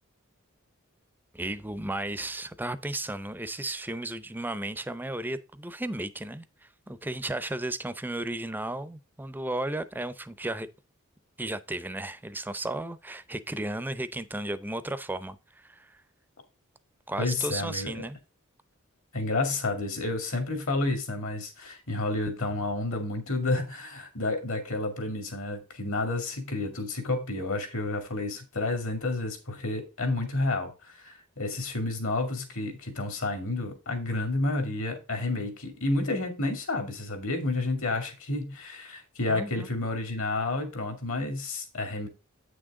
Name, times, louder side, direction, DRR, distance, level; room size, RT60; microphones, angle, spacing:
voice 1, 1.3-10.7 11.4-16.0 17.1-18.2 39.3-39.7, right 1 dB, 10° right, 0.6 m, -34 dB
voice 2, 17.2-18.0 19.1-42.1, left 2 dB, 65° left, 2.5 m, -30 dB
8.6 x 6.3 x 3.7 m
head